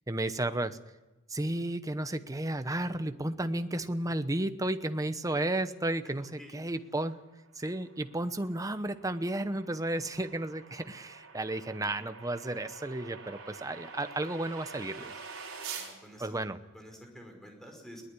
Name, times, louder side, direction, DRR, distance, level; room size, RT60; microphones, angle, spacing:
voice 1, 0.1-0.8 1.3-7.2 7.5-15.2 16.2-16.6, right 1 dB, 15° right, 10 dB, 0.9 m, -33 dB
sound 1, 7.2-15.9, right 5 dB, 65° right, 5.5 m, -47 dB
voice 2, 15.7-16.4 16.7-18.0, equal, ahead, 2 dB, 5.2 m, -49 dB
21.5 x 18.5 x 9.9 m, 1.1 s
head